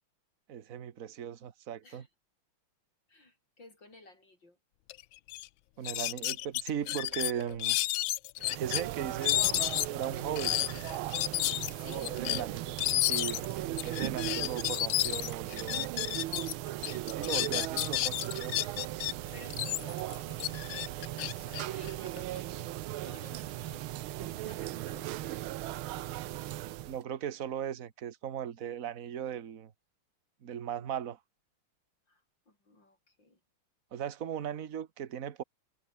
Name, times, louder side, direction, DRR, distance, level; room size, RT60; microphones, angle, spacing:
voice 1, 0.5-2.0 5.8-7.8 8.5-10.6 12.0-12.8 13.0-16.0 17.1-18.6 26.9-29.7 30.4-31.2 33.9-35.4, right 9 dB, 45° right, 1.5 m, -38 dB
voice 2, 3.1-4.6 11.8-12.1 13.9-14.2 19.3-22.8 23.0-25.4 32.1-33.4, left 2 dB, 55° left, 8.2 m, -54 dB
sound 1, 4.9-5.0 5.3-5.5 5.8-8.8 9.2-16.5 16.8-19.1 19.5-22.4, left 16 dB, 75° left, 1.3 m, -31 dB
sound 2, 8.4-27.0, right 15 dB, 75° right, 1.5 m, -38 dB
omnidirectional pair, 2.4 m